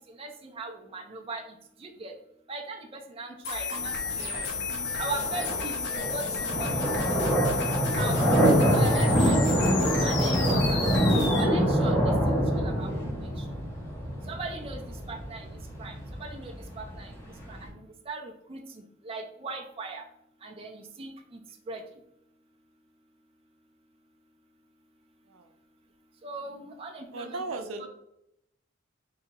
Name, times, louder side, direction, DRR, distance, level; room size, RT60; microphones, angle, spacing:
voice 1, 0.1-1.4 1.8-2.2 2.5-4.3 5.0-6.7 8.0-8.4 8.7-10.8 11.4-12.9 13.4-13.5 14.3-15.5 15.8-17.1 17.5-17.8 18.1-20.0 20.4-21.4 21.7-21.8 26.2-27.9, right 3 dB, 30° right, 3 dB, 0.5 m, -39 dB
sound 1, 3.4-11.4, left 4 dB, 55° left, 0.8 m, -32 dB
sound 2, 3.8-17.7, equal, 10° left, 1.4 m, -26 dB
voice 2, 4.1-4.6 11.1-11.4 25.3-25.5 27.1-27.9, right 3 dB, 80° right, 6 dB, 0.5 m, -38 dB
3.9 x 2.8 x 4.4 m, 0.79 s
head